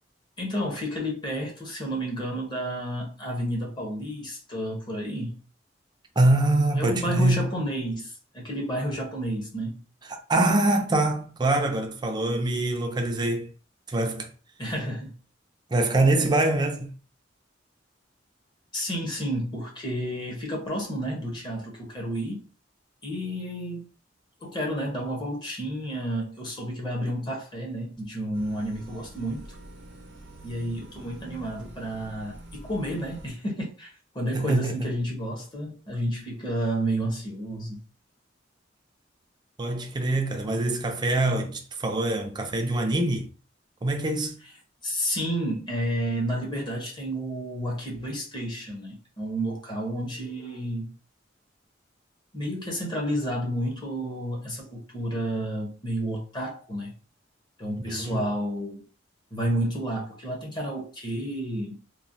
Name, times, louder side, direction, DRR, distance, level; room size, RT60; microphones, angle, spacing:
voice 1, 0.4-5.4 6.8-9.8 14.6-15.1 18.7-22.5 23.0-23.9 24.4-29.5 30.4-33.9 34.1-37.8 44.8-50.9 52.3-56.9 57.6-58.8 59.3-61.8, equal, 25° left, 0.9 m, -31 dB
voice 2, 6.2-7.5 10.1-13.5 13.9-14.3 15.7-16.9 34.3-34.9 39.6-43.3 43.8-44.4 57.8-58.3, right 2 dB, 25° right, 0.4 m, -24 dB
sound 1, 28.3-33.3, right 1 dB, 65° right, 0.6 m, -46 dB
3.0 x 2.2 x 2.6 m
head